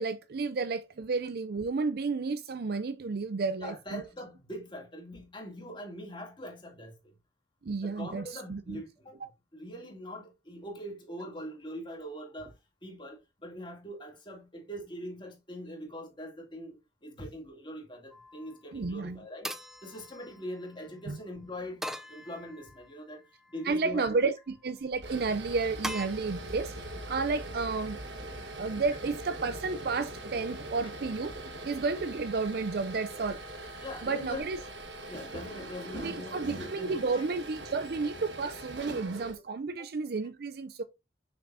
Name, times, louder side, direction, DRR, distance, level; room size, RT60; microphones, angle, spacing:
voice 1, 0.0-4.0 7.6-8.8 9.2-9.3 18.7-19.2 21.1-21.2 23.6-28.0 28.6-31.4 31.6-33.4 34.0-34.6 35.9-40.8, right 4 dB, 60° right, 0.5 m, -32 dB
voice 2, 3.6-7.1 7.8-12.5 12.8-19.5 19.8-23.2 23.5-24.0 33.8-34.4 35.1-37.2, equal, 25° left, 2.5 m, -42 dB
sound 1, 18.1-18.6 19.4-20.8 21.8-22.9 23.4-24.1 25.8-26.1, equal, ahead, 0.5 m, -41 dB
sound 2, 24.8-39.3, right 1 dB, 90° right, 1.4 m, -42 dB
6.9 x 6.0 x 2.7 m
head